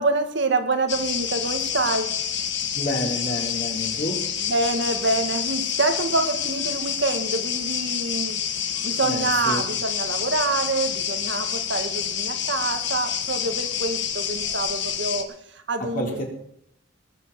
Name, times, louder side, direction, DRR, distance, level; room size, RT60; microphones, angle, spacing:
voice 1, 0.0-2.1 4.4-8.4 8.8-15.3 15.5-16.2, right 3 dB, 60° right, 7 dB, 1.8 m, -26 dB
sound 1, 0.9-15.2, left 8 dB, 60° left, 1.5 m, -28 dB
voice 2, 2.7-4.2 9.0-9.6 15.8-16.2, left 1 dB, 45° left, -1 dB, 4.1 m, -29 dB
19.5 x 6.7 x 7.6 m, 0.74 s
head